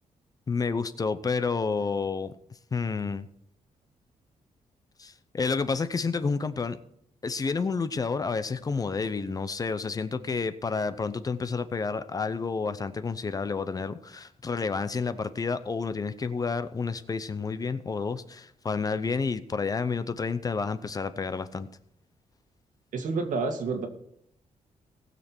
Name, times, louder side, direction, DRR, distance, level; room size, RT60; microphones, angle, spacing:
voice 1, 0.5-2.3 2.7-3.3 5.0-6.8 7.2-21.7, left 4 dB, 30° left, 12 dB, 0.6 m, -30 dB
voice 2, 22.9-23.9, right 4 dB, 80° right, 5 dB, 2.0 m, -29 dB
19.0 x 6.6 x 4.5 m, 0.71 s
wide cardioid pair, 155°, 13 cm